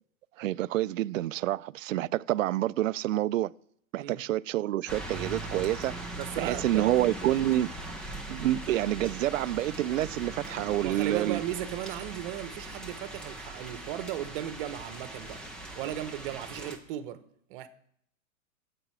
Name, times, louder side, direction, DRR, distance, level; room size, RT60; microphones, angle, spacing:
voice 1, 0.4-3.5 3.9-5.9 6.4-7.7 8.3-11.4, right 14 dB, 70° right, 0.5 m, -28 dB
sound 1, 4.9-16.8, right 1 dB, ahead, 0.5 m, -40 dB
voice 2, 6.1-6.8 10.8-15.4 15.8-17.2 17.5-17.7, right 12 dB, 40° right, 1.1 m, -36 dB
13.5 x 8.6 x 4.9 m
hypercardioid pair, 140°, 41 cm